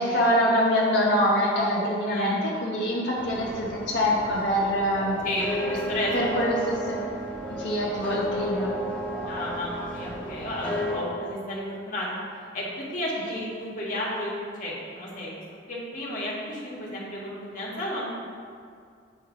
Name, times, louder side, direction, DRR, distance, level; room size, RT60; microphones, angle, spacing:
voice 1, 0.0-5.1 6.1-7.0 7.6-8.7, equal, 70° left, -6 dB, 0.9 m, -24 dB
voice 2, 2.0-2.4 5.2-6.3 9.2-12.1 12.5-14.3 14.6-15.4 15.7-18.1, left 1 dB, 45° left, -5 dB, 1.6 m, -32 dB
sound 1, 3.2-11.0, right 1 dB, 5° left, 1.2 m, -33 dB
8.6 x 3.2 x 4.8 m, 2.2 s
head